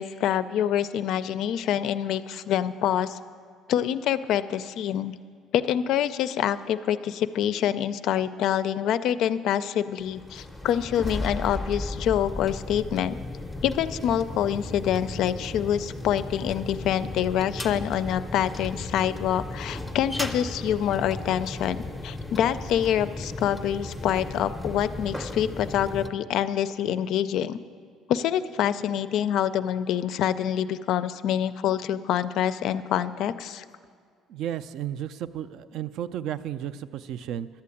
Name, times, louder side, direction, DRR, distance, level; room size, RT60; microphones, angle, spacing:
voice 1, 0.0-3.2 3.7-5.1 5.5-13.2 13.6-21.8 22.0-27.6 28.1-33.6, left 10 dB, 60° left, 13 dB, 0.4 m, -26 dB
sound 1, 10.0-26.1, left 2 dB, ahead, 0.6 m, -35 dB
voice 2, 34.3-37.5, right 10 dB, 60° right, 14 dB, 0.3 m, -33 dB
11.5 x 7.6 x 8.4 m, 2.1 s
cardioid pair, 160°, 0 cm